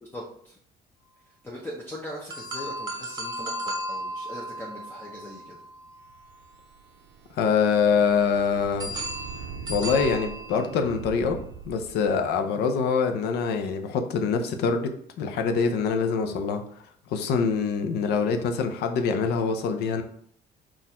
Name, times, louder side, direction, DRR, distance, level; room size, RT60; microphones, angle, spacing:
voice 1, 0.0-0.6 1.4-5.6, left 1 dB, 10° left, -4 dB, 0.7 m, -40 dB
sound 1, 2.3-6.4 8.8-11.1, right 1 dB, 25° right, 0.9 m, -35 dB
sound 2, 5.9-12.3, right 6 dB, 80° right, 0.5 m, -42 dB
voice 2, 7.3-8.9 9.7-11.4 11.7-14.9 15.2-16.6 17.1-20.0, left 5 dB, 80° left, 6 dB, 0.6 m, -24 dB
4.1 x 2.5 x 4.2 m, 0.63 s
cardioid pair, 110°, 17 cm